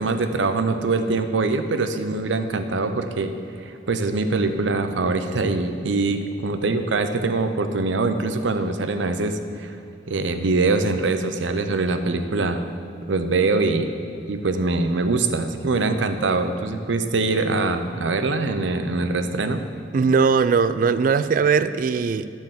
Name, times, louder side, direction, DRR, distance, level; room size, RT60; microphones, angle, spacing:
voice 1, 0.0-3.3 3.6-9.8 10.1-12.6 13.1-13.9 14.3-19.6, right 3 dB, 85° right, 8 dB, 0.6 m, -23 dB
voice 2, 19.9-22.3, right 5 dB, 45° right, 13 dB, 0.3 m, -19 dB
10.5 x 4.6 x 7.4 m, 2.4 s
head